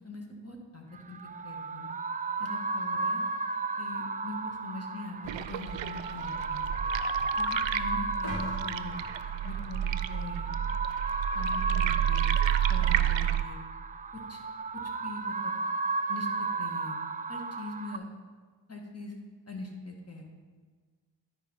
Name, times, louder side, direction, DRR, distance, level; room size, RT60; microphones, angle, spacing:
voice 1, 0.0-1.2 1.4-1.9 2.4-3.2 3.8-6.7 7.4-7.5 7.7-9.0 9.4-10.6 11.3-12.3 12.7-13.6 14.3-14.4 15.0-15.5 16.1-16.3 16.6-17.0 17.3-18.1 18.7-19.2 19.5-20.2, left 3 dB, 30° left, 2 dB, 1.6 m, -41 dB
sound 1, 1.0-18.0, right 3 dB, 20° right, 0.3 m, -34 dB
sound 2, 5.3-13.4, right 11 dB, 70° right, 0.5 m, -30 dB
sound 3, 8.2-10.4 10.9-11.0, left 1 dB, 50° left, 3.1 m, -44 dB
11.0 x 4.7 x 5.3 m, 1.5 s
cardioid pair, 65°, 46 cm